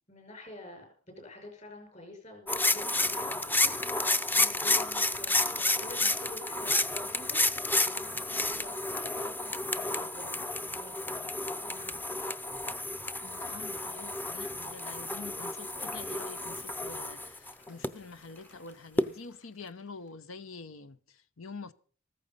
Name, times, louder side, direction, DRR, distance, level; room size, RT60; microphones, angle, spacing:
voice 1, 0.1-0.9 1.2-7.5 7.8-12.2, left 1 dB, 35° left, 5.9 m, -48 dB
sound 1, 2.5-17.9 19.0-19.1, left 2 dB, 10° left, 0.6 m, -31 dB
Cheering / Applause, 12.8-20.1, left 3 dB, 65° left, 3.5 m, -59 dB
voice 2, 13.2-21.7, left 4 dB, 85° left, 0.9 m, -46 dB
15.0 x 14.0 x 5.5 m
head